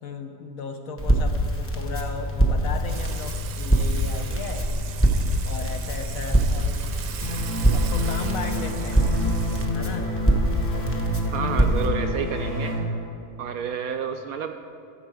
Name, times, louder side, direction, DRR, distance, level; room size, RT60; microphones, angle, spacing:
voice 1, 0.0-4.7 5.4-7.0 7.7-9.1 9.7-10.1, left 5 dB, 65° left, 5 dB, 1.0 m, -36 dB
Crackle, 1.0-11.9, right 1 dB, 10° left, 0.7 m, -24 dB
Water / Water tap faucet / Sink (filling or washing), 2.9-9.7, right 9 dB, 85° right, 1.3 m, -40 dB
sound 1, 7.2-12.8, left 1 dB, 25° left, 2.0 m, -29 dB
voice 2, 11.3-12.8 13.4-14.6, right 7 dB, 70° right, 6 dB, 0.9 m, -30 dB
14.5 x 7.4 x 4.8 m, 2.7 s
omnidirectional pair, 1.8 m